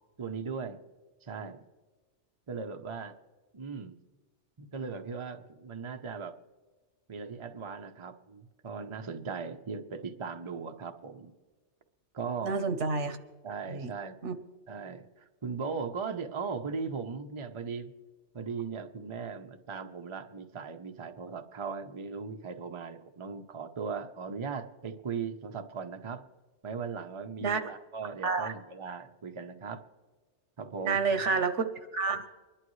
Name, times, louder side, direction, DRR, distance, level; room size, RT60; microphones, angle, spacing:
voice 1, 0.2-0.8 1.2-1.6 2.5-3.1 3.5-4.0 4.6-6.3 7.1-11.3 12.1-12.6 13.4-14.2 14.7-17.9 18.3-26.2 26.6-29.8 30.6-31.4, right 5 dB, 30° right, 6 dB, 0.7 m, -38 dB
voice 2, 12.4-13.2 13.7-13.9 14.2-14.3 27.4-27.6 28.2-28.5 30.8-31.7 31.9-32.3, right 4 dB, 80° right, 9 dB, 1.3 m, -29 dB
24.5 x 11.5 x 3.2 m, 1.3 s
omnidirectional pair, 1.2 m